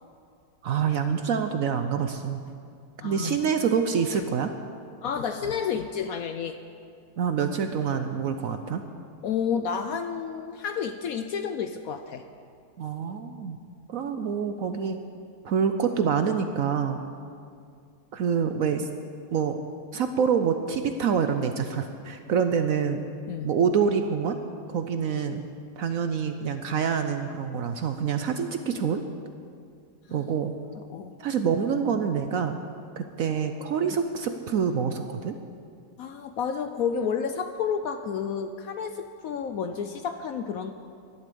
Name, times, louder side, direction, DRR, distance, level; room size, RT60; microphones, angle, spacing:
voice 1, 0.6-2.4 3.0-4.5 7.2-8.8 12.8-13.6 13.9-15.0 15.4-17.0 18.1-18.9 19.3-19.6 19.9-23.0 23.4-24.4 24.7-25.4 25.8-29.0 30.1-30.5 31.2-32.6 33.0-35.4, right 6 dB, 65° right, 7 dB, 0.9 m, -26 dB
voice 2, 3.0-3.4 5.0-6.6 9.2-12.2 23.3-23.5 30.1-30.3 30.9-31.1 36.0-40.7, left 7 dB, 70° left, 8 dB, 0.9 m, -30 dB
11.5 x 11.5 x 6.9 m, 2.3 s
omnidirectional pair, 1.9 m